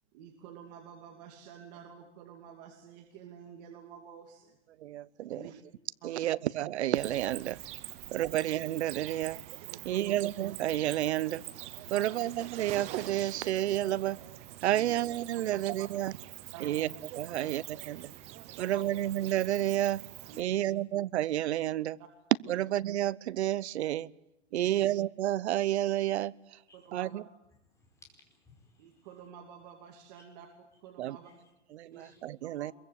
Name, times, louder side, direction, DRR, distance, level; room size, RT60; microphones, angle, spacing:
voice 1, 0.1-4.6 5.3-5.5 6.0-6.2 8.2-8.4 9.7-10.2 11.8-12.2 14.7-14.9 15.5-15.9 16.5-16.8 17.4-17.5 18.5-18.8 20.3-20.6 22.5-22.6 24.5-24.8 26.7-27.2 28.8-31.3 31.9-32.1 32.4-32.7, right 7 dB, 35° right, 2 dB, 2.6 m, -50 dB
voice 2, 4.8-5.4 6.0-7.6 8.1-9.4 9.8-11.4 11.9-14.2 14.6-16.1 16.6-16.9 17.2-18.1 18.6-20.0 20.4-22.0 22.5-24.1 24.5-26.6 26.9-27.2 31.0-31.2 31.7-32.7, right 13 dB, 65° right, 20 dB, 0.9 m, -30 dB
Cricket, 6.9-20.4, right 14 dB, 20° right, 0.8 m, -45 dB
voice 3, 26.7-27.0 27.7-29.1 30.1-30.2 31.2-31.4 31.9-32.3, left 3 dB, 10° left, 1 dB, 5.1 m, -61 dB
23.0 x 22.5 x 8.4 m, 0.86 s
supercardioid pair, 170°, 36 cm